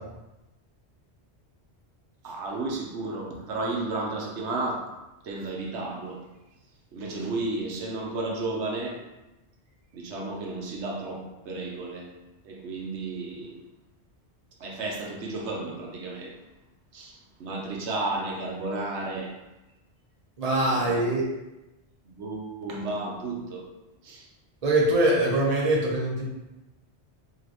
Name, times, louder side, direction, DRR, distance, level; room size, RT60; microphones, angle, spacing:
voice 1, 2.2-4.9 5.2-6.2 6.9-9.0 9.9-12.1 12.4-13.6 14.6-16.4 16.9-19.4 20.7-21.1 22.1-23.7 24.0-24.3, right 2 dB, 85° right, -1 dB, 1.1 m, -33 dB
voice 2, 20.4-21.2 24.6-26.3, right 1 dB, 35° right, -3 dB, 1.0 m, -23 dB
5.0 x 3.0 x 3.0 m, 0.99 s
omnidirectional pair, 1.1 m